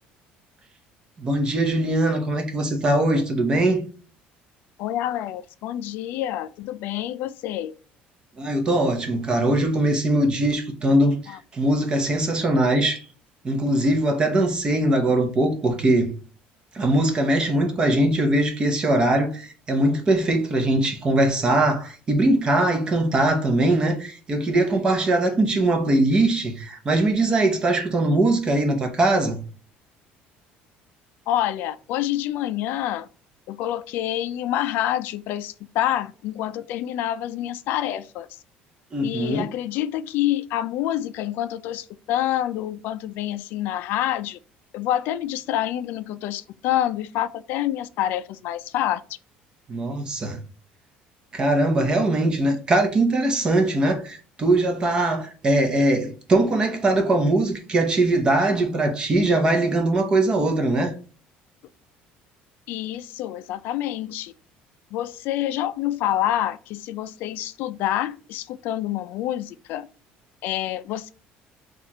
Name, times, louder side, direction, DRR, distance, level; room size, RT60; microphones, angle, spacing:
voice 1, 1.2-3.9 8.4-13.0 13.4-16.1 16.7-29.4 38.9-39.5 49.7-50.4 51.3-60.9, right 1 dB, 25° right, 0.8 m, -21 dB
voice 2, 4.8-7.7 11.3-11.4 31.3-33.1 33.5-38.3 39.0-44.4 44.7-49.0 62.7-64.3 64.9-69.9 70.4-71.1, left 12 dB, 65° left, 0.3 m, -27 dB
4.4 x 2.4 x 4.2 m
cardioid pair, 160°, 4 cm